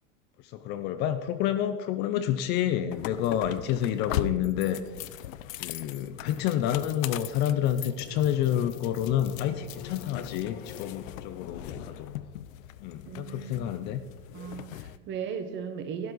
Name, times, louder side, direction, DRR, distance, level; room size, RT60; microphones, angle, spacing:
voice 1, 0.4-4.8 5.6-12.1 12.8-14.0, left 11 dB, 30° left, 11 dB, 0.4 m, -29 dB
sound 1, 2.9-15.0, left 12 dB, 85° left, 0.6 m, -40 dB
sound 2, 6.3-12.6, left 10 dB, 55° left, 0.9 m, -44 dB
voice 2, 13.1-13.8 14.3-16.1, right 7 dB, 30° right, 8 dB, 1.1 m, -37 dB
12.5 x 10.5 x 3.9 m, 1.4 s
supercardioid pair, 150°, 38 cm